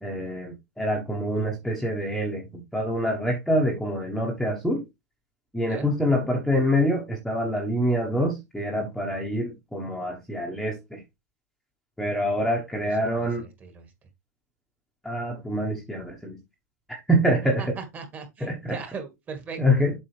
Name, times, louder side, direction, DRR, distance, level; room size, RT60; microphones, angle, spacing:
voice 1, 0.0-4.8 5.5-11.0 12.0-13.5 15.0-16.4 16.9-17.7 18.4-18.8 19.6-19.9, equal, ahead, 1.2 m, -26 dB
voice 2, 13.2-13.9 17.6-19.6, right 5 dB, 20° right, 1.8 m, -38 dB
7.5 x 5.2 x 3.3 m
hypercardioid pair, 145°, 9 cm